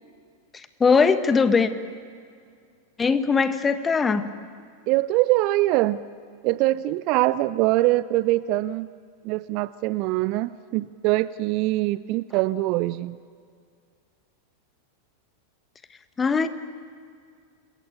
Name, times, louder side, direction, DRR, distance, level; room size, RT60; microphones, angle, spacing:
voice 1, 0.5-1.7 3.0-4.3 16.2-16.5, left 5 dB, 15° left, 11 dB, 1.3 m, -20 dB
voice 2, 4.9-6.0 6.4-8.9 9.2-13.2, right 17 dB, 40° right, 18 dB, 0.6 m, -23 dB
27.5 x 21.5 x 9.1 m, 2.2 s
figure-of-eight pair, 90°, 0 cm